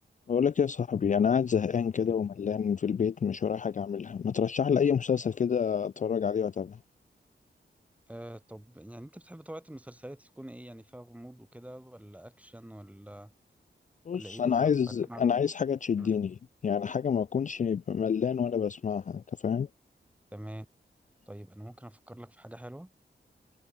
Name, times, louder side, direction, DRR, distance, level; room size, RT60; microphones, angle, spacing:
voice 1, 0.3-6.8 14.1-16.4 16.6-19.7, left 7 dB, 40° left, 0.4 m, -28 dB
voice 2, 8.1-13.3 14.1-14.7 15.1-15.2 16.0-16.1 20.3-20.7 21.3-22.9, right 1 dB, 5° right, 2.2 m, -45 dB
wide cardioid pair, 120°, 19 cm